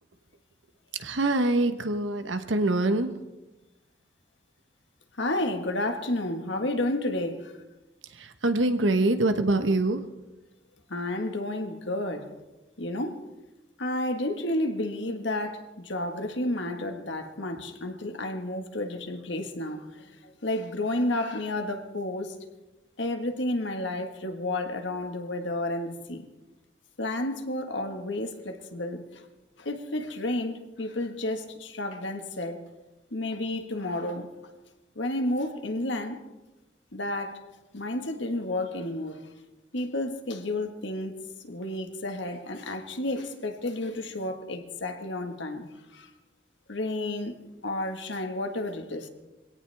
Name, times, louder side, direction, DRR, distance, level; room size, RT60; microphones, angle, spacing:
voice 1, 1.0-3.1 8.1-10.0, right 2 dB, 85° right, 8 dB, 1.2 m, -24 dB
voice 2, 5.1-7.5 10.9-12.3 12.8-13.2 13.8-22.3 23.0-26.3 27.0-29.2 29.6-32.6 33.1-34.3 34.9-36.2 36.9-37.4 37.7-39.2 39.7-41.1 41.4-46.1 46.7-47.3 47.6-49.1, left 1 dB, 75° left, 5 dB, 1.7 m, -31 dB
23.5 x 17.0 x 3.5 m, 1.1 s
head